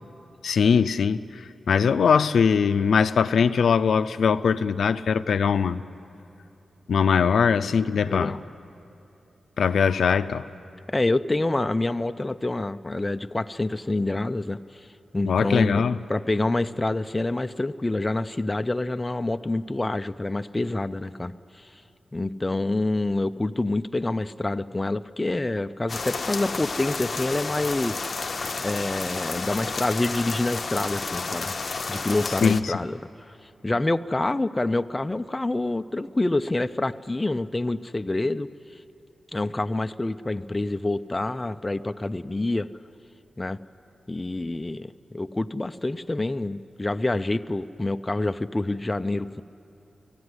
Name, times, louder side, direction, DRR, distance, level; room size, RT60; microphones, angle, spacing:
voice 1, 0.4-5.8 6.9-8.4 9.6-10.4 15.2-16.0 32.4-32.8, left 6 dB, 80° left, 0.4 m, -21 dB
voice 2, 8.0-8.4 10.9-14.8 15.1-21.7 22.1-28.2 28.6-31.5 31.9-33.0 33.3-38.5 39.3-42.7 43.4-43.6 44.1-49.4, left 2 dB, 20° left, 0.4 m, -27 dB
sound 1, 25.9-32.6, left 4 dB, 40° left, 0.8 m, -31 dB
18.5 x 14.5 x 9.7 m
wide cardioid pair, 100°, 0 cm